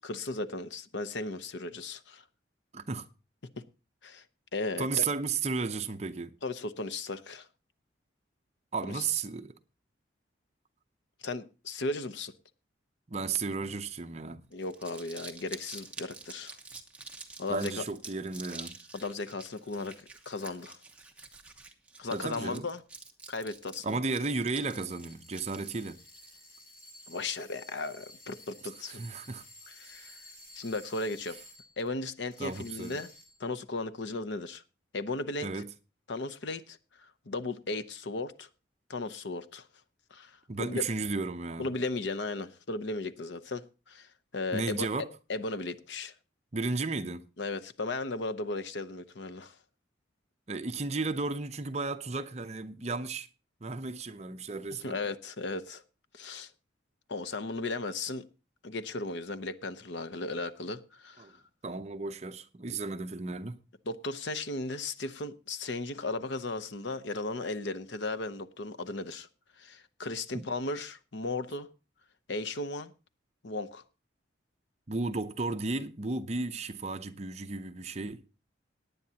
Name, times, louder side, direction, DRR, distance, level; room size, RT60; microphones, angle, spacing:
voice 1, 0.0-2.2 4.0-4.2 4.5-5.1 6.4-7.5 9.0-9.1 11.2-12.3 14.5-16.6 17.4-17.8 18.9-20.8 22.0-22.8 23.3-24.0 27.1-29.0 29.8-30.2 30.6-31.4 31.8-33.1 33.4-34.6 34.9-35.5 36.1-38.5 38.9-39.6 40.1-40.8 41.6-46.1 47.4-49.6 54.8-55.8 56.1-56.5 57.1-58.3 58.6-61.3 63.9-69.3 69.6-71.7 72.3-72.9 73.4-73.8, left 3 dB, 70° left, 0.8 m, -36 dB
voice 2, 2.7-3.1 4.8-6.3 8.7-9.6 13.1-14.4 17.5-18.8 22.1-22.7 23.8-26.0 28.9-29.4 32.4-33.0 35.4-35.7 40.5-41.7 44.5-45.1 46.5-47.2 50.5-53.3 53.6-55.0 61.2-61.3 61.6-63.6 70.3-70.4 74.9-78.2, right 3 dB, 35° right, 0.6 m, -34 dB
Crumpling crinkling, 14.5-26.3, right 3 dB, 5° right, 1.0 m, -48 dB
sound 1, 24.6-31.9 32.3-33.5, left 1 dB, 45° left, 3.1 m, -53 dB
18.5 x 9.4 x 2.8 m
head